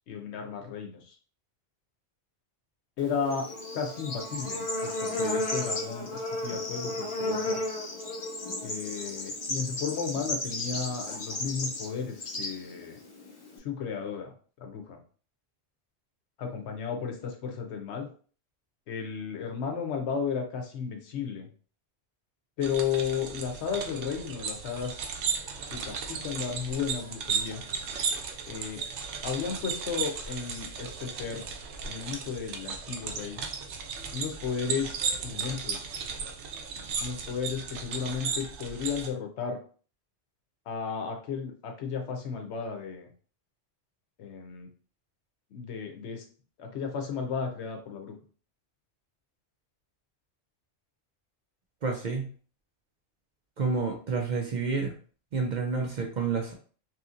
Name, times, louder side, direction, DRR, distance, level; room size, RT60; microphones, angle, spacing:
voice 1, 0.1-1.0 3.0-3.5 3.7-7.6 8.6-13.0 13.6-15.0 16.4-18.1 18.9-21.5 22.6-25.0 25.7-27.6 28.5-28.8 29.2-31.4 31.8-33.4 34.1-35.9 37.0-39.6 40.7-43.1 44.2-44.7 45.5-46.2 46.6-48.1, left 6 dB, 80° left, 4 dB, 1.0 m, -34 dB
Bird / Insect, 3.0-13.6, left 1 dB, 40° left, 0.5 m, -34 dB
sound 1, 22.6-39.1, right 6 dB, 90° right, 0.9 m, -35 dB
voice 2, 51.8-52.3 53.6-54.9 55.3-56.5, right 4 dB, 55° right, 1 dB, 0.5 m, -29 dB
3.0 x 2.8 x 2.4 m, 0.41 s
omnidirectional pair, 1.1 m